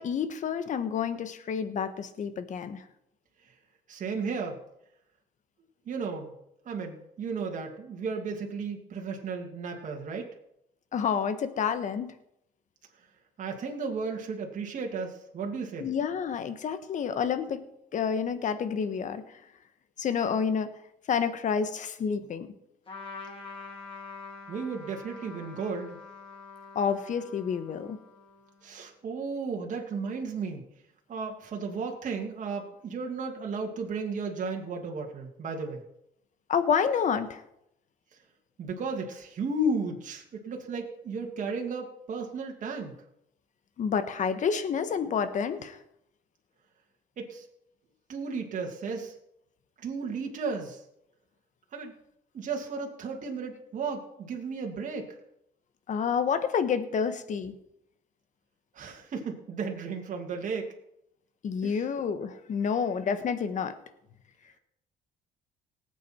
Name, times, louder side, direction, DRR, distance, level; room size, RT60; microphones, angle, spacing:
voice 1, 0.0-2.8 10.9-12.1 15.8-17.6 17.9-19.2 20.0-20.7 21.1-22.5 26.7-28.0 36.5-37.4 43.8-45.8 55.9-57.6 61.4-63.7, left 6 dB, 45° left, 11 dB, 1.3 m, -29 dB
voice 2, 3.9-4.6 5.9-6.3 6.7-10.3 13.4-15.9 24.5-26.0 28.6-30.7 31.1-35.8 38.6-43.0 47.2-47.5 48.1-49.1 49.8-50.8 51.7-51.9 52.3-55.2 58.7-60.7 61.6-61.9, right 4 dB, 50° right, 1 dB, 2.3 m, -34 dB
Trumpet, 22.9-28.7, left 4 dB, 30° left, 3.2 m, -46 dB
18.5 x 8.5 x 4.4 m, 0.79 s
cardioid pair, 110°, 17 cm